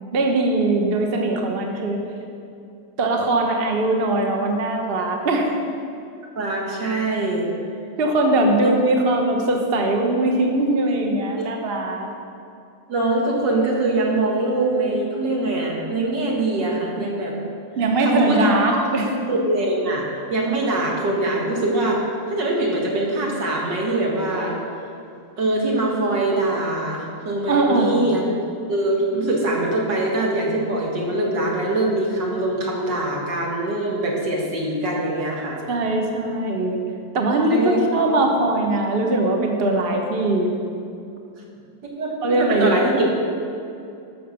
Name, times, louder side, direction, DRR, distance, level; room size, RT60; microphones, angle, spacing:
voice 1, 0.1-2.0 3.0-5.5 8.0-12.1 17.8-19.1 27.5-28.1 35.7-36.8 37.1-40.5 42.2-42.8, right 2 dB, 40° right, 2 dB, 1.0 m, -21 dB
voice 2, 6.3-7.5 8.6-8.7 11.3-11.5 12.9-17.4 18.0-18.8 19.3-24.6 25.4-28.2 28.7-35.6 37.4-37.9 42.0-43.1, right 2 dB, 60° right, -2 dB, 2.5 m, -23 dB
13.0 x 6.5 x 6.5 m, 2.5 s
omnidirectional pair, 2.3 m